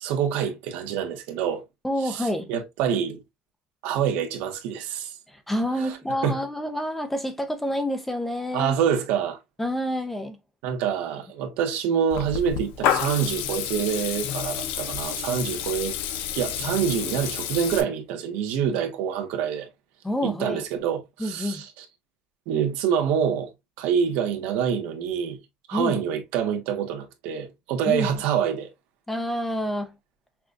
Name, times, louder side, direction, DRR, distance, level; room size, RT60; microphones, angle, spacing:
voice 1, 0.0-1.6 2.0-3.2 3.8-5.2 5.8-6.0 6.2-6.4 8.5-9.4 10.6-16.0 16.4-19.7 20.2-21.8 22.5-23.5 23.8-25.4 25.7-28.7, right 8 dB, 75° right, 1.1 m, -26 dB
voice 2, 1.8-2.5 5.3-8.8 9.6-10.4 20.0-20.6 21.2-21.6 25.7-26.0 27.9-28.1 29.1-29.9, equal, 5° left, 0.5 m, -28 dB
Water tap faucet / Liquid, 12.1-17.8, left 9 dB, 70° left, 0.6 m, -29 dB
5.9 x 2.3 x 2.5 m
cardioid pair, 155°, 3 cm